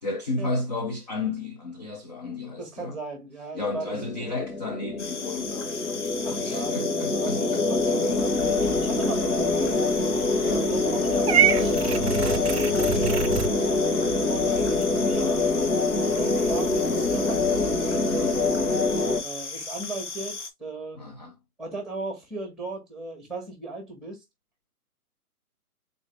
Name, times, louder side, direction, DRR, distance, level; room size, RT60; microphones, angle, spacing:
voice 1, 0.0-3.0 3.5-7.6 10.4-10.6 14.0-14.2 16.2-16.5 18.1-18.9 21.0-21.3, left 3 dB, 30° left, 0.5 m, -33 dB
voice 2, 2.6-4.3 6.2-8.3 8.8-9.9 10.5-15.5 16.1-17.7 19.2-21.0 21.6-24.2, right 2 dB, ahead, 1.3 m, -37 dB
sound 1, 3.7-19.2, left 3 dB, 65° left, 1.5 m, -25 dB
sound 2, 5.0-20.5, left 4 dB, 50° left, 1.1 m, -36 dB
Purr / Meow, 11.3-13.5, right 9 dB, 45° right, 0.5 m, -25 dB
4.0 x 3.1 x 3.2 m
figure-of-eight pair, 140°, 46 cm